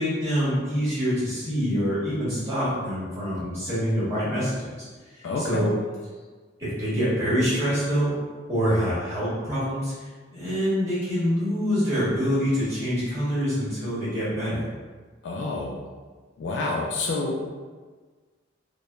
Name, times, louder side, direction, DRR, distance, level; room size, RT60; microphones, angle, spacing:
voice 1, 0.0-5.7 6.6-8.1 8.5-14.7, equal, 15° right, -10 dB, 0.9 m, -26 dB
voice 2, 5.2-5.7 15.2-15.8 16.4-17.4, left 3 dB, 65° left, -1 dB, 0.3 m, -28 dB
3.1 x 2.0 x 2.2 m, 1.4 s
head